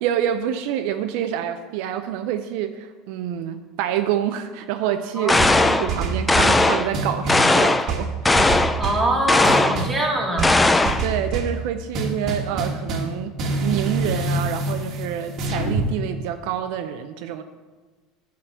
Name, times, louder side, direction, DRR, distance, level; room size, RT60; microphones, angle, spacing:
voice 1, 0.0-8.7 11.0-13.4 13.6-17.4, right 10 dB, 70° right, 8 dB, 0.5 m, -27 dB
voice 2, 5.1-6.1 8.8-10.7, right 1 dB, 10° right, -1 dB, 1.6 m, -24 dB
sound 1, 5.3-5.9 6.3-6.9 7.3-7.9 8.2-8.8 9.3-9.8 10.4-11.1, left 2 dB, 10° left, 0.3 m, -18 dB
sound 2, 5.4-6.6 6.9-7.5 7.9-9.1 9.4-10.0 10.4-11.6 11.9-15.9, right 2 dB, 40° right, 1.3 m, -26 dB
9.5 x 3.8 x 6.9 m, 1.3 s
supercardioid pair, 135°, 0 cm